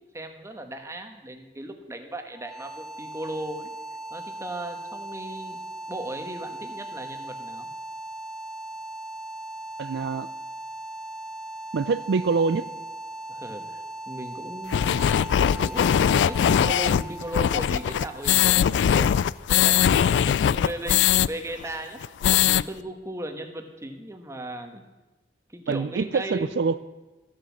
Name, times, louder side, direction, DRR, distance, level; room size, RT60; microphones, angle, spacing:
voice 1, 0.1-3.7 4.1-5.6 5.9-7.7 13.3-15.0 15.6-22.0 22.3-24.8 25.5-26.7, right 1 dB, 15° right, 5 dB, 1.2 m, -37 dB
sound 1, 2.3-19.2, right 1 dB, ahead, 0.7 m, -39 dB
voice 2, 9.8-10.3 11.7-12.7 25.7-26.8, right 4 dB, 75° right, 13 dB, 0.4 m, -25 dB
sound 2, 14.7-21.3 21.6-21.7 22.0-22.6, left 9 dB, 85° left, 0.3 m, -21 dB
13.5 x 7.3 x 7.1 m, 1.1 s
head